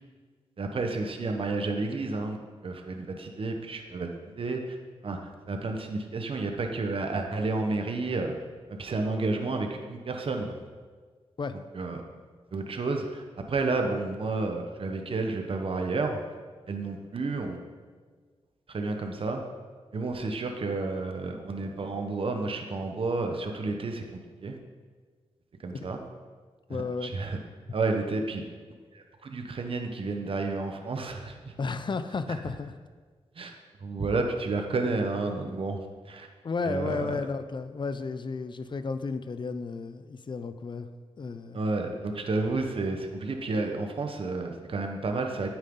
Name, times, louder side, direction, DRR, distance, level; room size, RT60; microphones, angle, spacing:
voice 1, 0.6-4.1 4.4-4.8 5.0-8.3 8.7-10.6 11.7-12.0 12.5-16.2 16.7-17.6 18.7-19.4 19.9-24.6 25.6-26.0 26.7-27.4 27.7-28.4 28.9-31.5 33.3-33.5 33.8-36.3 36.6-37.2 41.5-45.5, right 3 dB, 55° right, 4 dB, 1.1 m, -31 dB
voice 2, 26.7-27.1 31.6-32.7 36.4-40.9 41.2-41.6, left 4 dB, 45° left, 11 dB, 0.6 m, -33 dB
9.2 x 9.1 x 3.9 m, 1.5 s
cardioid pair, 75°, 11 cm